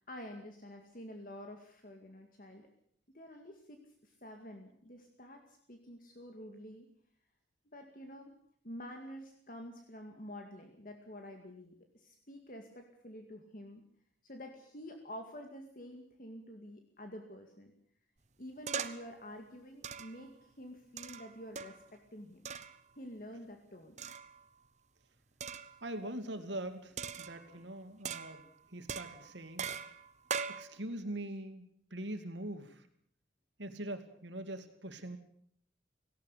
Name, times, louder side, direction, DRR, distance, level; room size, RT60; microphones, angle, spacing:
voice 1, 0.0-2.7 3.1-6.9 7.7-8.4 8.6-13.8 14.2-17.7 18.4-22.4 23.0-24.0, equal, 50° left, 4 dB, 2.2 m, -49 dB
sound 1, 18.7-19.2 19.8-20.3 21.0-21.9 22.5-22.8 24.0-24.5 25.4-25.8 27.0-27.6 28.0-28.5 28.9-30.6, right 6 dB, 40° right, 1.0 m, -41 dB
voice 2, 25.8-29.6 30.5-31.7 31.9-32.9 33.6-35.2, right 1 dB, 85° right, 8 dB, 2.5 m, -42 dB
18.0 x 17.5 x 8.3 m, 0.63 s
head